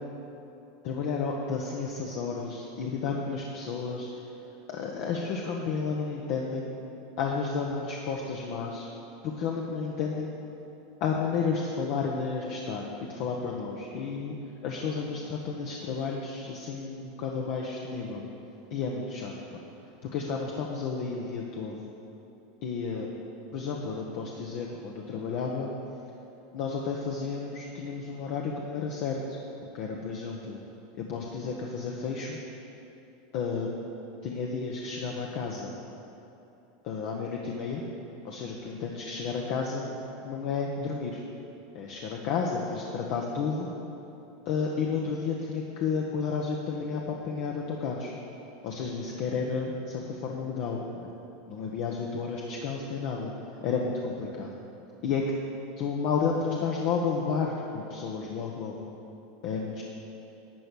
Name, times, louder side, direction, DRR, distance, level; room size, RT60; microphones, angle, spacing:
voice 1, 0.8-4.1 4.7-6.7 7.2-8.9 9.2-10.3 11.0-14.4 14.6-18.2 18.7-19.6 20.0-21.8 22.6-23.1 23.5-25.7 26.5-29.4 29.7-30.6 31.0-32.4 33.3-33.7 34.2-35.7 36.8-37.8 38.2-39.8 40.2-41.2 41.7-43.7 44.4-48.1 48.6-51.1 51.5-53.3 53.6-54.5 55.0-55.3 55.8-58.7 59.4-59.8, left 5 dB, 60° left, 0 dB, 1.0 m, -32 dB
12.0 x 4.6 x 8.5 m, 2.9 s
supercardioid pair, 125°, 0 cm